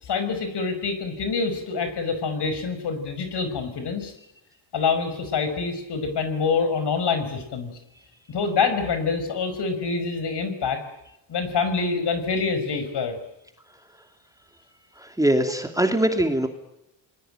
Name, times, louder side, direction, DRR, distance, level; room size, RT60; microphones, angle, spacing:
voice 1, 0.0-4.1 4.7-7.7 8.3-10.8 11.3-13.2, left 5 dB, 60° left, 9 dB, 5.8 m, -26 dB
voice 2, 14.9-16.5, right 1 dB, 5° right, 5 dB, 2.9 m, -22 dB
26.5 x 20.5 x 9.2 m, 0.88 s
cardioid pair, 85°, 47 cm